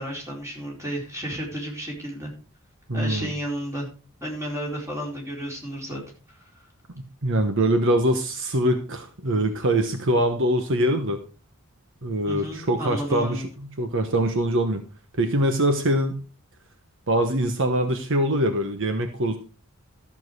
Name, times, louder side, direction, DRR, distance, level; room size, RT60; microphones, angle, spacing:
voice 1, 0.0-2.3 2.9-3.9 4.2-6.0 6.3-6.4 12.3-13.5, equal, 15° right, -1 dB, 4.3 m, -32 dB
voice 2, 2.9-3.3 7.0-11.2 12.0-14.8 15.2-16.2 17.1-19.4, right 1 dB, 60° right, 7 dB, 1.2 m, -23 dB
13.5 x 7.3 x 4.8 m, 0.34 s
head